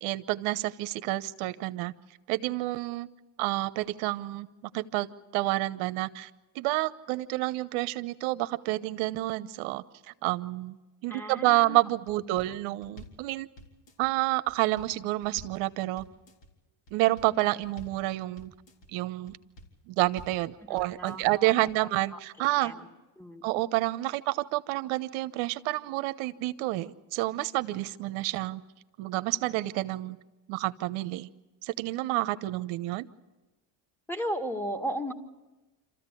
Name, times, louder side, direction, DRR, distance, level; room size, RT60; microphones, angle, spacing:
voice 1, 0.0-1.9 2.3-3.1 3.4-4.5 4.7-5.1 5.3-6.3 6.5-10.8 11.0-13.5 14.0-16.0 16.9-18.5 18.9-19.4 19.9-22.7 23.4-28.6 29.0-30.2 30.5-31.3 31.6-33.1, right 18 dB, 75° right, 13 dB, 1.0 m, -29 dB
voice 2, 11.1-11.8 12.4-12.5 20.9-21.7 22.6-22.9 23.2-23.5 34.1-35.1, right 1 dB, 5° left, 1 dB, 2.0 m, -35 dB
sound 1, 12.1-12.5 12.8-13.2 13.6-14.1 14.5-14.9 15.2-15.6 16.0-16.5 16.9-17.3 17.6-18.0 18.4-18.9 19.3-19.7 20.0-20.4 20.8-21.3 21.7-21.8, equal, 60° left, 4.0 m, -49 dB
27.0 x 14.5 x 8.4 m, 1.1 s
supercardioid pair, 85°, 49 cm